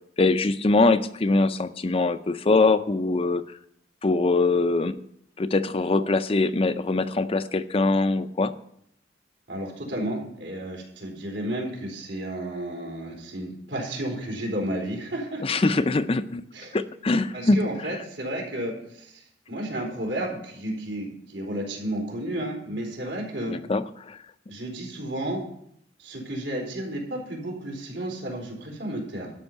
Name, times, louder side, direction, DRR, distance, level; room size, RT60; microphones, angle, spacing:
voice 1, 0.2-3.4 4.0-5.0 5.4-8.5 15.4-16.4 16.7-17.7 23.5-24.2, left 3 dB, 30° left, 11 dB, 0.5 m, -23 dB
voice 2, 9.5-15.4 16.5-16.8 17.3-23.6 24.5-25.4 26.0-29.3, right 1 dB, 80° right, 0 dB, 4.0 m, -32 dB
12.5 x 5.4 x 9.1 m, 0.72 s
head